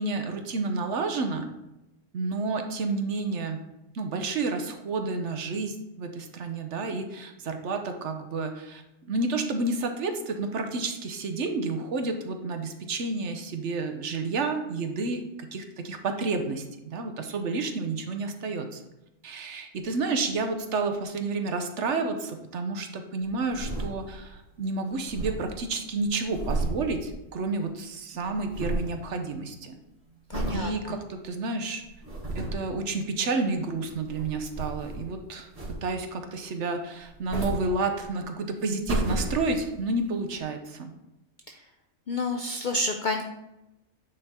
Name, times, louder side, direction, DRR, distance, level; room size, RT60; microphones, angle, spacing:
voice 1, 0.0-1.5 2.1-3.6 3.9-18.8 19.2-29.7 30.5-31.8 32.3-35.5 35.8-40.9, right 3 dB, 60° right, 6 dB, 1.0 m, -30 dB
sound 1, 23.3-24.4 24.6-24.7 24.9-27.7 28.0-29.0 29.4-29.7 30.3-30.7 31.2-31.3 31.8-32.7 33.7-35.2 35.5-36.1 37.0-38.2 38.6-39.8 40.4-40.5, right 2 dB, 25° right, 1.9 m, -33 dB
voice 2, 30.3-30.9 42.1-43.2, left 2 dB, 60° left, 4 dB, 0.5 m, -29 dB
8.9 x 3.6 x 4.2 m, 0.93 s
omnidirectional pair, 1.4 m